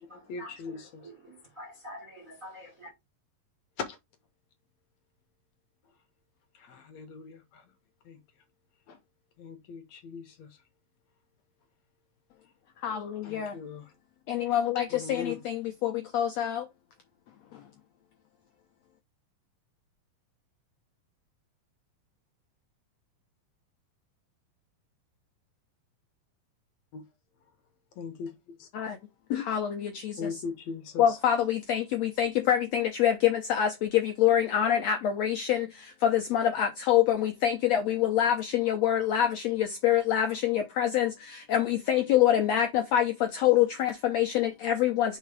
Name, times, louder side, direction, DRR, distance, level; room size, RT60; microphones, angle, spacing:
voice 1, 0.1-1.0 3.9-4.0 6.6-7.6 8.1-8.2 8.9-9.0 9.4-10.5 13.2-13.9 14.9-15.4 26.9-27.0 28.0-28.3 28.6-28.7 30.2-31.2, left 5 dB, 70° left, 1.8 m, -40 dB
voice 2, 1.0-2.9, left 1 dB, 30° right, 1.6 m, -46 dB
voice 3, 14.3-14.8 15.1-15.5 15.8-16.6 28.8-28.9 29.5-29.8 31.0-33.7 34.2-35.6 36.0-39.6 39.8-41.1 41.5-42.7 42.9-43.0 43.4-45.2, left 10 dB, 85° left, 1.5 m, -25 dB
4.8 x 4.6 x 4.8 m
omnidirectional pair, 4.0 m